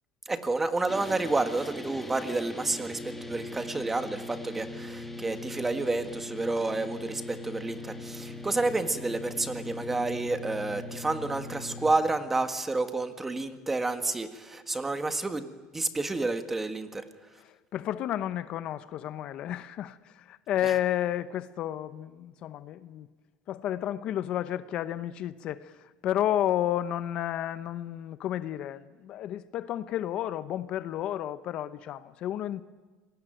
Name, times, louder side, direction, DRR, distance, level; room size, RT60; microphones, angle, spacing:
voice 1, 0.2-3.0 3.3-17.1 20.6-20.7, right 3 dB, 10° right, 1.7 m, -30 dB
sound 1, 0.9-11.9, left 2 dB, 5° left, 2.0 m, -40 dB
voice 2, 17.4-23.1 23.5-32.6, left 11 dB, 45° left, 0.9 m, -32 dB
27.0 x 19.5 x 9.1 m
cardioid pair, 140°, 2 cm